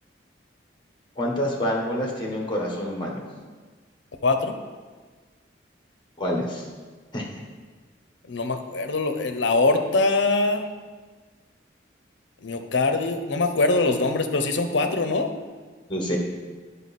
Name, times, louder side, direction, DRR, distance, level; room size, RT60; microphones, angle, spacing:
voice 1, 1.2-3.2 6.2-6.7 7.1-7.3 15.9-16.2, equal, 25° left, -1 dB, 1.3 m, -27 dB
voice 2, 4.2-4.5 8.3-10.7 12.4-15.3, left 3 dB, 75° left, 7 dB, 0.7 m, -23 dB
9.2 x 5.5 x 4.2 m, 1.4 s
head